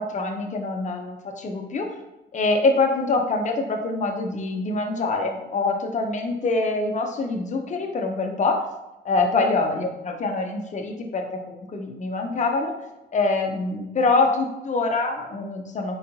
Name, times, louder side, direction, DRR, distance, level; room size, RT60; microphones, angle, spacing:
voice 1, 0.0-1.9 2.3-8.7 9.0-12.8 13.1-16.0, left 3 dB, 40° left, 3 dB, 0.7 m, -25 dB
4.2 x 3.9 x 2.7 m, 0.97 s
cardioid pair, 90°, 20 cm